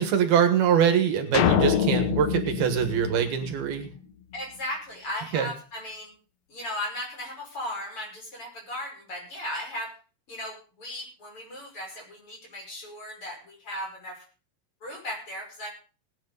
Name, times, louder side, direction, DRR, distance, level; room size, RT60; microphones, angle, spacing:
voice 1, 0.0-3.9 5.3-5.5, right 8 dB, 75° right, 7 dB, 3.4 m, -23 dB
sound 1, 1.3-3.9, left 8 dB, 80° left, 1.5 m, -25 dB
voice 2, 4.3-6.1 6.5-9.9 10.3-14.2 14.8-15.7, left 1 dB, 35° left, 0 dB, 6.3 m, -36 dB
19.0 x 10.0 x 4.0 m, 0.35 s
omnidirectional pair, 4.4 m